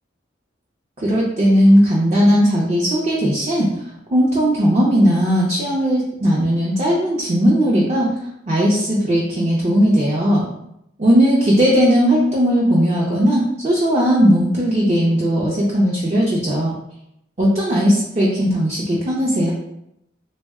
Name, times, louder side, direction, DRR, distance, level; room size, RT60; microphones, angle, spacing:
voice 1, 1.0-3.7 4.1-8.1 8.5-10.4 11.0-16.7 17.4-19.5, equal, 35° right, -5 dB, 0.5 m, -17 dB
3.5 x 2.1 x 3.4 m, 0.79 s
head